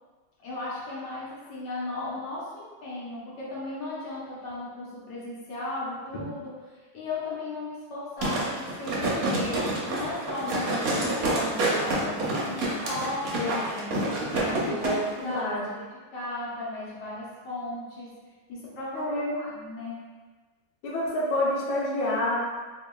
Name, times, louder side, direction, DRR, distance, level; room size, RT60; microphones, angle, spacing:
voice 1, 0.4-14.8 15.2-15.9 16.1-18.2 18.5-20.1, left 2 dB, 65° left, -7 dB, 1.4 m, -36 dB
sound 1, 8.2-15.0 15.3-15.4, right 1 dB, 60° right, 1.0 m, -28 dB
voice 2, 13.4-13.9 14.6-15.6 18.9-19.4 20.8-22.4, left 1 dB, 85° left, -4 dB, 1.6 m, -28 dB
4.0 x 3.0 x 2.2 m, 1.4 s
omnidirectional pair, 2.2 m